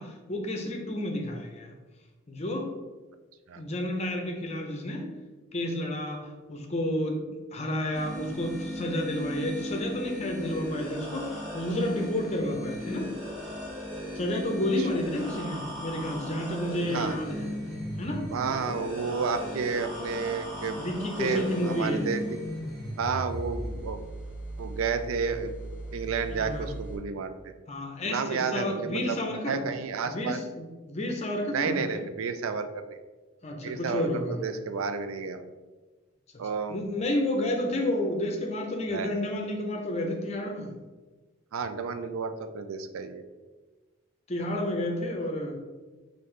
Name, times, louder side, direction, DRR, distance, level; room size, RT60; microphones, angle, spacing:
voice 1, 0.0-1.7 2.3-2.7 3.6-5.0 5.5-13.1 14.1-17.5 18.0-18.2 20.8-22.1 26.3-26.7 27.7-29.7 30.0-32.0 33.4-34.4 36.7-40.7 44.3-45.6, left 1 dB, 30° left, 2 dB, 0.6 m, -31 dB
sound 1, 7.9-27.0, equal, ahead, 1.4 m, -37 dB
voice 2, 16.8-17.2 18.3-20.8 21.2-22.4 23.0-24.0 24.6-25.6 25.9-27.3 28.0-29.2 29.5-30.4 31.5-33.0 33.6-35.4 36.4-36.8 38.9-39.1 41.5-43.2, right 5 dB, 85° right, 9 dB, 0.4 m, -31 dB
5.5 x 2.6 x 3.2 m, 1.3 s
head